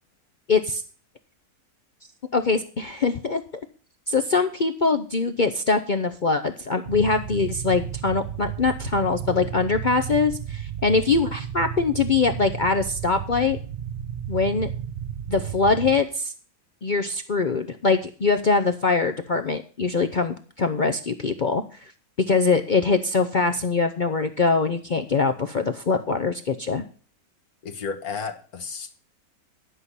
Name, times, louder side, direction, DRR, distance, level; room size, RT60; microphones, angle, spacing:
voice 1, 0.5-0.8 2.3-3.4 4.1-13.6 14.3-14.7 15.3-16.3 16.8-21.6 22.3-26.8, left 4 dB, 45° left, 6 dB, 0.6 m, -23 dB
sound 1, 6.8-16.0, right 9 dB, 50° right, 0.9 m, -33 dB
voice 2, 27.6-28.9, left 5 dB, 75° left, 6 dB, 1.8 m, -33 dB
11.5 x 5.7 x 8.2 m, 0.41 s
omnidirectional pair, 1.6 m